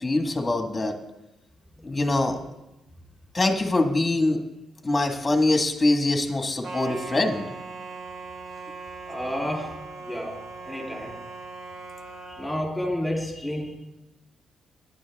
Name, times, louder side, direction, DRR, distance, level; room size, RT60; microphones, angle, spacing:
voice 1, 0.0-0.9 1.8-2.4 3.3-4.4 4.8-7.5, left 2 dB, 20° left, 4 dB, 1.6 m, -23 dB
sound 1, 6.6-12.6, right 3 dB, 70° right, 1.9 m, -39 dB
voice 2, 9.1-9.7 10.0-10.3 10.6-11.1 12.3-13.8, left 1 dB, 5° left, -1 dB, 3.5 m, -30 dB
15.0 x 11.0 x 3.6 m, 0.95 s
cardioid pair, 115°, 0 cm